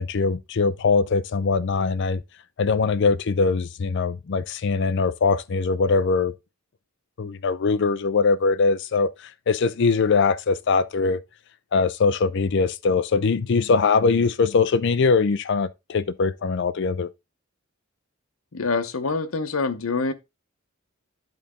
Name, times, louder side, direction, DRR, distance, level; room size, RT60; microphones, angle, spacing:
voice 1, 0.0-2.2 2.6-6.3 7.2-11.2 11.7-17.1, left 4 dB, 60° left, 0.5 m, -22 dB
voice 2, 18.5-20.1, left 4 dB, 90° left, 0.9 m, -25 dB
10.5 x 4.1 x 3.6 m
head